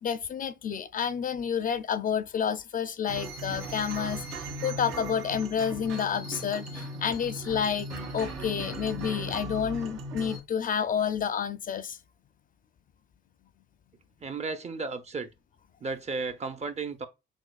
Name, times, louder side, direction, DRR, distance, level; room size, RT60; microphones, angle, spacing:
voice 1, 0.0-7.9 8.1-12.0, left 7 dB, 45° left, 0.4 m, -30 dB
sound 1, 3.1-10.4, right 1 dB, 85° right, 1.6 m, -38 dB
voice 2, 14.2-15.3 15.8-17.1, right 4 dB, 35° right, 0.6 m, -34 dB
6.2 x 2.3 x 2.3 m
cardioid pair, 90°, 20 cm